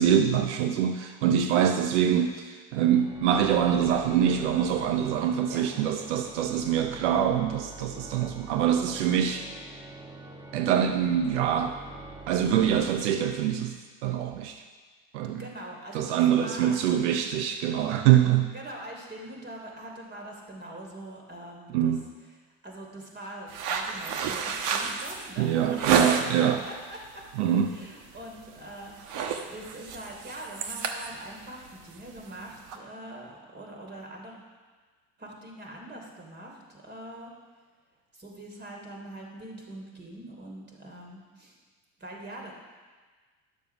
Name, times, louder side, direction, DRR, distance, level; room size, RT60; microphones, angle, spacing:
voice 1, 0.0-9.5 10.5-11.8 12.3-13.7 14.0-14.6 15.1-15.4 15.9-18.5 21.7-22.1 25.4-26.6 27.4-27.7, right 9 dB, 90° right, 6 dB, 0.7 m, -24 dB
Organ, 2.8-13.6, right 2 dB, 10° right, 1.5 m, -45 dB
voice 2, 15.4-17.1 18.5-22.0 22.6-27.2 27.7-34.4 35.2-37.3 38.1-41.6 42.0-42.5, right 1 dB, 30° right, 0 dB, 3.2 m, -43 dB
sound 1, 23.5-26.5 26.9-27.3 27.6-27.9 28.2-28.6 28.8-32.8, right 6 dB, 65° right, 1.1 m, -30 dB
11.0 x 6.9 x 5.9 m, 1.4 s
supercardioid pair, 80°, 34 cm